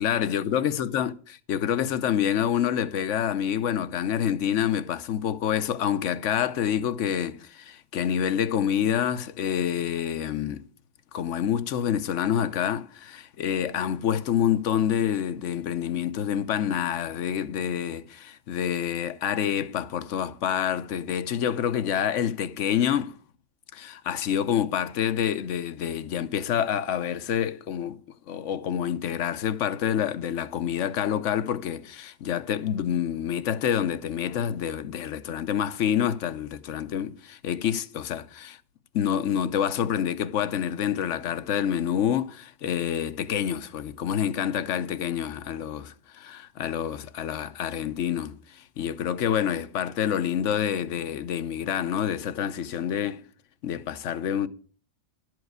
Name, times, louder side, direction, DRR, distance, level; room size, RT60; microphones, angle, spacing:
voice 1, 0.0-10.6 11.1-23.2 23.7-28.0 28.3-38.6 38.9-53.2 53.6-54.5, left 9 dB, 75° left, 1.1 m, -27 dB
12.0 x 4.8 x 7.9 m
omnidirectional pair, 1.3 m